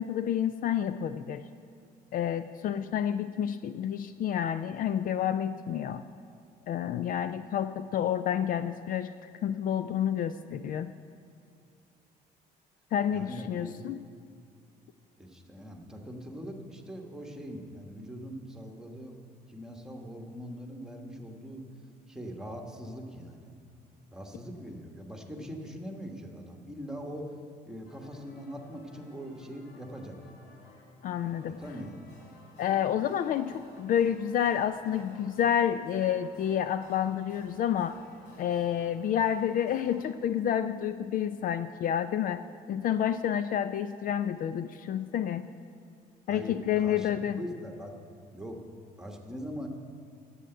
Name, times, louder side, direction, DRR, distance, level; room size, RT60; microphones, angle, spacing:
voice 1, 0.0-1.4 2.1-6.0 6.7-9.1 9.4-10.9 12.9-14.0 31.0-31.6 32.6-38.0 38.4-42.4 42.7-45.5 46.3-47.4, left 9 dB, 55° left, 12 dB, 0.4 m, -29 dB
voice 2, 13.1-13.9 15.2-19.2 19.5-21.6 22.1-23.5 24.1-27.3 27.6-30.2 31.5-32.0 46.3-47.9 48.3-48.6 49.0-49.7, equal, 5° right, 2 dB, 1.3 m, -42 dB
sound 1, 27.8-40.0, left 2 dB, 85° left, 2.4 m, -55 dB
9.9 x 7.8 x 7.9 m, 2.4 s
cardioid pair, 110°, 17 cm